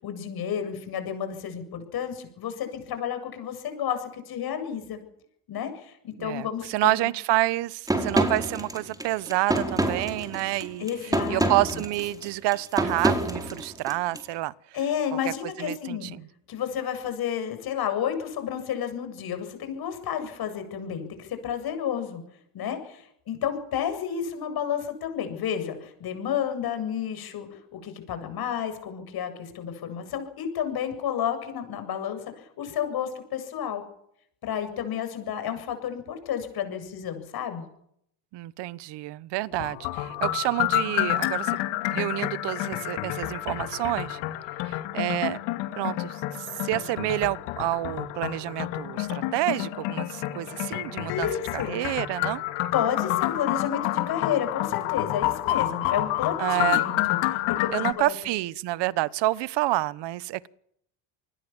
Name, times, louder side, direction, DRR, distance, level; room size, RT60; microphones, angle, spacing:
voice 1, 0.0-5.0 5.5-6.9 10.8-11.5 14.7-16.1 16.5-22.2 22.5-33.8 34.4-37.6 51.1-51.8 52.7-58.1, left 8 dB, 55° left, 7.6 m, -31 dB
voice 2, 6.2-14.5 15.2-15.3 15.6-16.2 38.3-41.6 41.9-44.2 44.6-45.4 45.8-51.3 51.5-52.4 56.4-56.8 57.7-60.5, right 17 dB, 65° right, 1.2 m, -28 dB
sound 1, 7.9-14.2, right 1 dB, 10° right, 4.9 m, -27 dB
sound 2, 39.5-57.9, left 16 dB, 85° left, 2.7 m, -29 dB
28.0 x 20.5 x 7.3 m
cardioid pair, 110°, 44 cm